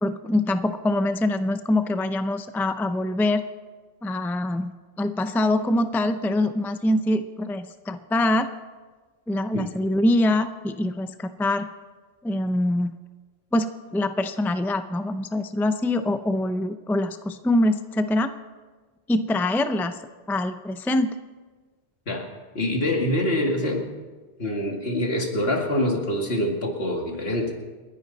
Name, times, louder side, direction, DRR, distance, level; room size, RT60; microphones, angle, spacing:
voice 1, 0.0-3.4 4.0-4.7 5.0-8.5 9.3-11.7 12.2-12.9 13.5-18.3 19.1-20.0 20.3-21.1, left 1 dB, 5° left, 9 dB, 0.4 m, -24 dB
voice 2, 22.5-23.9 24.4-27.5, left 1 dB, 75° left, 1 dB, 2.5 m, -25 dB
29.5 x 10.5 x 4.1 m, 1.4 s
omnidirectional pair, 1.0 m